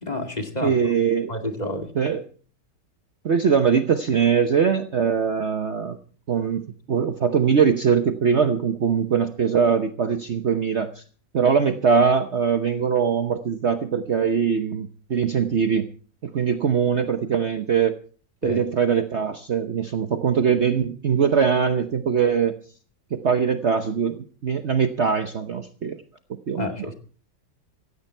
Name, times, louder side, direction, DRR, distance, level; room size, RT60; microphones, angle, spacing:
voice 1, 0.0-0.8 1.3-1.9 18.4-18.6 26.6-26.9, left 1 dB, 25° left, 2.3 m, -29 dB
voice 2, 0.6-1.3 2.0-2.2 3.2-6.0 6.3-11.0 11.3-15.9 16.2-18.0 18.4-22.6 23.1-26.0 26.5-26.9, right 6 dB, 50° right, 1.1 m, -22 dB
16.5 x 15.5 x 4.5 m
omnidirectional pair, 1.8 m